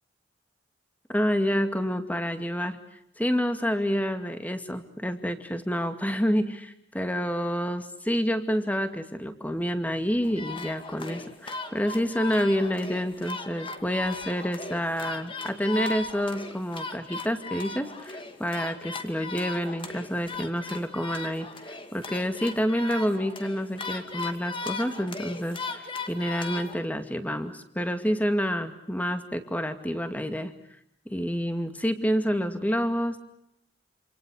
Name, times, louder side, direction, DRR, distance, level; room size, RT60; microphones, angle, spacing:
voice 1, 1.1-2.8 3.2-30.5 31.1-33.2, equal, 10° left, 8 dB, 2.3 m, -28 dB
sound 1, 10.2-26.7, left 3 dB, 25° left, 2.4 m, -38 dB
28.0 x 27.5 x 6.5 m, 0.79 s
head